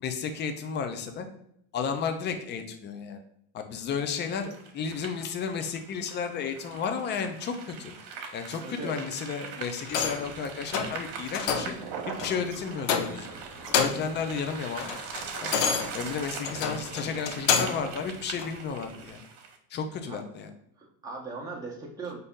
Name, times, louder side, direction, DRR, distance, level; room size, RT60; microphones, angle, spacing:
voice 1, 0.0-1.3 1.7-3.2 3.5-7.5 7.8-7.9 8.3-11.7 12.1-13.3 13.7-14.9 15.4-15.6 15.9-19.2 19.7-20.5, left 6 dB, 25° left, 7 dB, 0.4 m, -33 dB
sound 1, 4.1-19.6, right 6 dB, 60° right, 1.0 m, -41 dB
voice 2, 8.6-9.0 20.1-20.2 20.8-22.2, right 3 dB, 5° right, -2 dB, 0.8 m, -39 dB
sound 2, 9.9-10.3 10.7-11.0 11.3-11.8 12.2-12.4 12.8-13.3 13.6-14.2 14.5-17.9 18.4-18.5, left 6 dB, 75° left, 0.7 m, -29 dB
4.0 x 2.7 x 3.6 m, 0.72 s
supercardioid pair, 100°, 48 cm